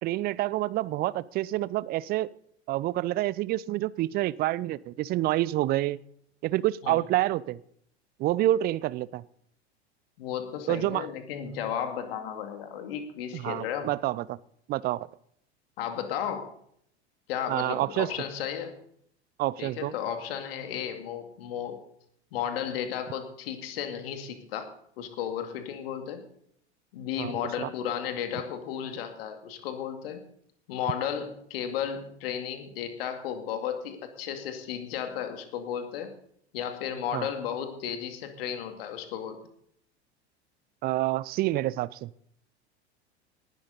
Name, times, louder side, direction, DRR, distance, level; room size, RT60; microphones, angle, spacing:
voice 1, 0.0-2.3 2.7-6.0 6.4-7.6 8.2-9.2 10.7-11.1 13.3-14.4 14.7-15.1 17.5-18.1 19.4-19.9 27.2-27.3 27.6-27.7 37.1-37.3 40.8-42.1, right 16 dB, 30° right, 21 dB, 0.5 m, -28 dB
voice 2, 10.2-13.9 15.8-16.5 17.3-18.8 19.6-21.8 22.3-24.7 25.0-26.2 26.9-30.3 30.7-36.1 36.5-39.4, left 9 dB, 60° left, 7 dB, 2.3 m, -34 dB
19.0 x 11.5 x 4.0 m, 0.70 s
figure-of-eight pair, 80°, 34 cm